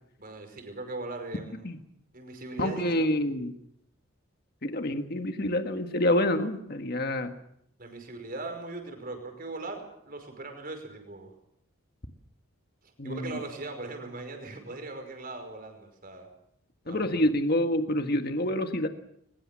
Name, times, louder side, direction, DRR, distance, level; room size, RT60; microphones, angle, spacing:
voice 1, 0.2-1.7 2.1-3.0 7.8-11.3 12.8-16.3 16.8-17.3, right 2 dB, 40° right, 5 dB, 5.5 m, -39 dB
voice 2, 2.6-3.5 4.6-7.3 13.0-13.3 16.9-18.9, left 1 dB, 45° left, 7 dB, 1.6 m, -27 dB
22.5 x 21.0 x 7.5 m, 0.74 s
head